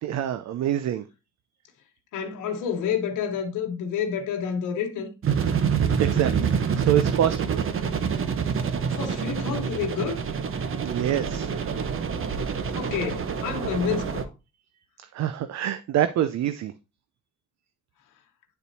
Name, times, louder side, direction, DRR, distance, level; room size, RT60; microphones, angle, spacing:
voice 1, 0.0-1.0 6.0-7.6 10.8-11.5 15.1-16.7, right 11 dB, 65° right, 0.5 m, -26 dB
voice 2, 2.1-5.1 8.9-10.3 12.7-14.3, left 7 dB, 90° left, 1.1 m, -29 dB
sound 1, 5.2-14.2, right 6 dB, 45° right, 0.8 m, -27 dB
10.0 x 4.0 x 2.7 m
cardioid pair, 90°, 30 cm